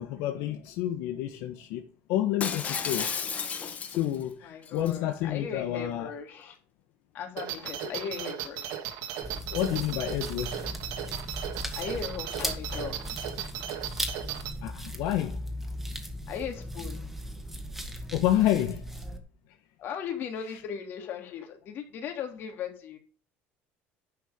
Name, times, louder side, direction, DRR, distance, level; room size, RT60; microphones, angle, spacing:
voice 1, 0.0-1.8 2.1-3.1 3.9-6.1 7.9-8.0 9.5-10.7 14.6-15.4 18.1-18.8 20.5-20.6, left 12 dB, 80° left, 5 dB, 1.5 m, -29 dB
Shatter, 2.4-4.2 4.7-4.9, left 6 dB, 30° left, 1.6 m, -32 dB
voice 2, 4.4-6.6 7.1-8.8 11.7-13.0 16.3-17.0 19.8-23.0, left 7 dB, 50° left, 4 dB, 3.3 m, -37 dB
sound 1, 7.4-14.5, right 10 dB, 80° right, 2.0 m, -36 dB
sound 2, 9.2-19.2, equal, 5° right, 1.9 m, -37 dB
10.5 x 7.3 x 5.2 m, 0.38 s
cardioid pair, 145°, 5 cm